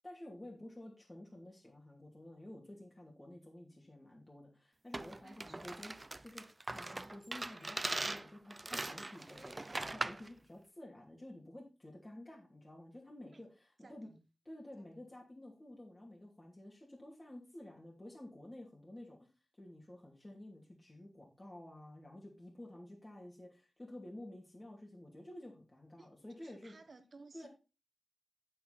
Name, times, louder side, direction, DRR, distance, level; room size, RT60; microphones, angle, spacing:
voice 1, 0.0-6.4 6.7-14.1 14.4-19.3 19.6-26.7 27.3-27.5, left 1 dB, 25° left, 2.7 m, -52 dB
sound 1, 4.9-10.3, right 2 dB, 30° right, 0.5 m, -41 dB
voice 2, 5.2-5.8 13.3-13.5 13.8-14.3 14.8-15.1 26.0-27.5, right 3 dB, 60° right, 1.4 m, -59 dB
7.9 x 7.9 x 4.1 m
cardioid pair, 55°, 0 cm